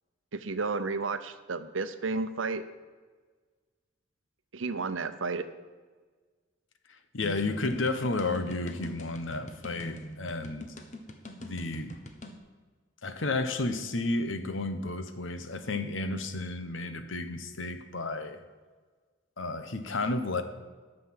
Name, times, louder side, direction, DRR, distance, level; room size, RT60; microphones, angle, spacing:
voice 1, 0.3-2.6 4.5-5.5, right 4 dB, 80° right, 11 dB, 0.8 m, -32 dB
voice 2, 7.1-10.7 11.4-11.9 13.0-18.4 19.4-20.4, left 2 dB, 80° left, 9 dB, 1.0 m, -32 dB
sound 1, 7.2-12.4, left 1 dB, 40° left, 1.0 m, -44 dB
11.5 x 6.7 x 7.5 m, 1.4 s
head